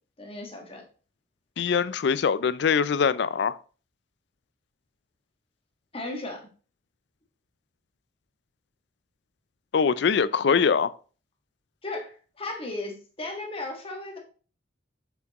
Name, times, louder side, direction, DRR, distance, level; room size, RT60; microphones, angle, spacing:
voice 1, 0.2-0.8 5.9-6.5 11.8-14.2, left 2 dB, 30° left, 1.5 m, -35 dB
voice 2, 1.6-3.6 9.7-10.9, left 6 dB, 60° left, 0.4 m, -23 dB
7.2 x 6.1 x 2.9 m
head